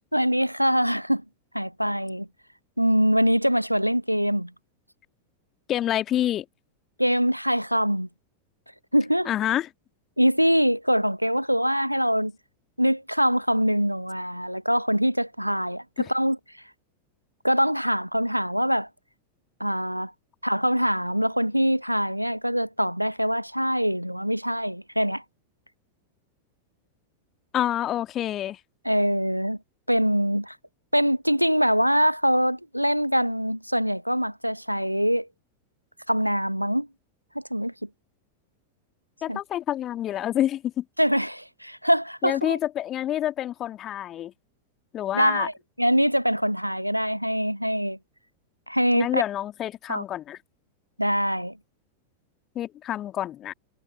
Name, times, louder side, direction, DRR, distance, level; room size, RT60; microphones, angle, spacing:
voice 1, 0.1-1.2 1.5-2.3 2.8-4.5 7.0-8.1 8.9-9.3 10.2-12.3 12.8-16.4 17.4-18.9 19.6-20.1 20.4-25.2 28.8-29.6 29.9-30.6 30.9-35.3 36.1-36.9 37.3-37.7 39.3-39.4 41.0-42.6 45.1-45.5 45.8-48.0 48.7-49.2 49.9-50.0 51.0-51.6, equal, 90° right, 1.1 m, -23 dB
voice 2, 5.7-6.5 9.3-9.7 16.0-16.1 27.5-28.6 39.2-40.8 42.2-44.3 44.9-45.5 48.9-50.4 52.6-53.5, left 12 dB, 30° left, 1.8 m, -27 dB
figure-of-eight pair, 90°, 0 cm